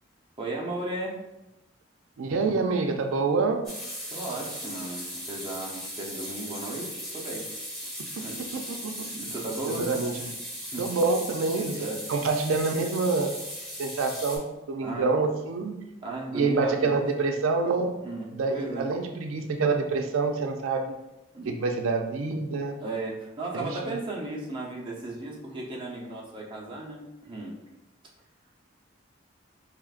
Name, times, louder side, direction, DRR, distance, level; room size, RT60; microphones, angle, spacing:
voice 1, 0.4-1.2 4.1-7.5 7.8-8.7 9.1-9.9 10.7-10.9 11.8-12.1 14.8-15.1 16.0-17.1 18.0-18.9 21.3-21.5 22.8-27.6, right 2 dB, 25° right, -3 dB, 0.7 m, -35 dB
voice 2, 2.2-3.6 8.0-8.1 8.4-8.5 8.8-8.9 9.7-10.3 10.8-13.3 13.8-15.8 16.3-18.0 18.3-21.0 21.5-22.8 23.6-23.7, right 4 dB, 90° right, 5 dB, 0.4 m, -27 dB
sound 1, 3.6-14.4, equal, 5° left, 1.5 m, -38 dB
5.0 x 3.1 x 2.4 m, 0.96 s
head